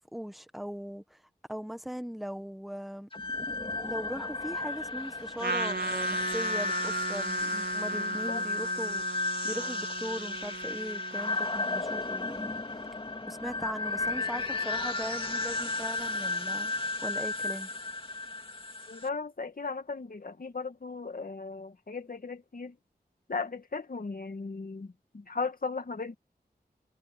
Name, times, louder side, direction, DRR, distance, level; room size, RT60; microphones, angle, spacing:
voice 1, 0.1-1.2 1.5-3.1 3.8-9.0 9.4-12.5 13.3-16.7 17.0-17.7, equal, ahead, 1.2 m, -39 dB
sound 1, 3.1-19.1, left 3 dB, 30° left, 2.5 m, -34 dB
sound 2, 4.7-11.8, right 5 dB, 50° right, 4.3 m, -56 dB
Trumpet, 5.4-12.1, right 3 dB, 80° right, 2.0 m, -37 dB
voice 2, 7.9-8.5 18.9-22.8 23.3-26.1, left 4 dB, 55° left, 2.0 m, -37 dB
wide cardioid pair, 85°, 17 cm